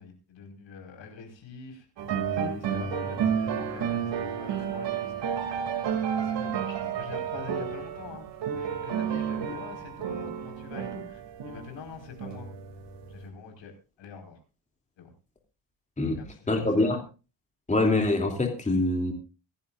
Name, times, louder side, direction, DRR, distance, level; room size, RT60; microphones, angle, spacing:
voice 1, 0.0-1.9 2.3-5.5 6.1-8.3 8.5-12.5 13.1-13.7 14.0-14.4 15.0-15.1 16.2-16.9, left 6 dB, 75° left, 3 dB, 5.2 m, -44 dB
sound 1, 2.0-13.3, right 8 dB, 65° right, 2.8 m, -31 dB
voice 2, 16.5-17.0 17.7-19.1, left 2 dB, 15° left, 2 dB, 3.0 m, -24 dB
25.5 x 11.0 x 2.6 m, 0.32 s
cardioid pair, 120°, 45 cm